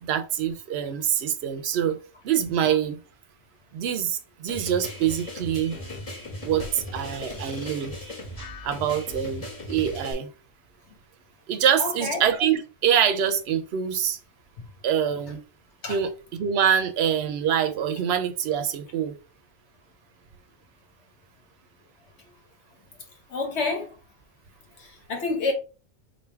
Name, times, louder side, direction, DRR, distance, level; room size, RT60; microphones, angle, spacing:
voice 1, 0.0-2.0 2.2-3.0 3.7-5.8 6.4-8.0 8.6-10.3 11.5-14.2 14.8-15.4 15.8-19.1, right 9 dB, 70° right, 0.8 m, -25 dB
sound 1, 4.5-10.1, left 1 dB, 35° left, 1.4 m, -37 dB
voice 2, 11.8-12.2 15.8-15.9 23.3-23.9 25.1-25.5, left 3 dB, 80° left, 1.4 m, -27 dB
3.4 x 2.6 x 4.5 m
omnidirectional pair, 1.1 m